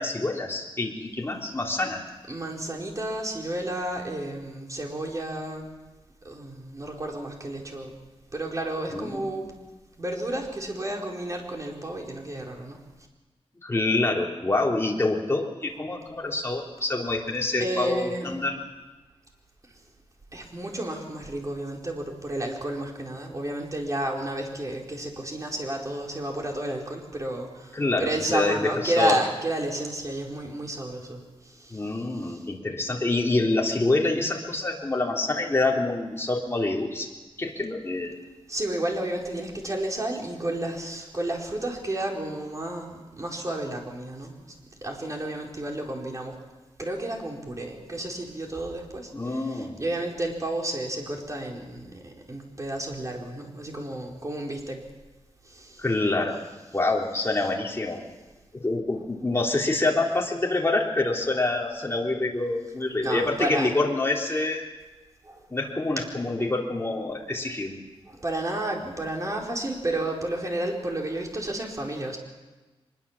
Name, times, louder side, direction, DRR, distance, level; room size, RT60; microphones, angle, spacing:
voice 1, 0.0-2.0 8.9-9.2 13.6-18.6 27.7-29.1 31.7-37.1 37.4-38.1 49.1-49.8 55.8-56.4 56.7-58.0 58.5-64.7 65.5-67.8, left 2 dB, 25° left, -1 dB, 3.6 m, -26 dB
voice 2, 2.3-5.7 6.2-7.9 8.3-9.5 10.0-12.8 17.6-18.4 19.7-19.8 20.3-32.4 38.5-44.5 44.8-46.4 46.8-54.8 55.4-55.9 63.0-63.7 65.2-65.5 68.1-72.2, right 1 dB, 35° right, 0 dB, 4.4 m, -31 dB
24.0 x 21.5 x 7.3 m, 1.2 s
wide cardioid pair, 130°, 10 cm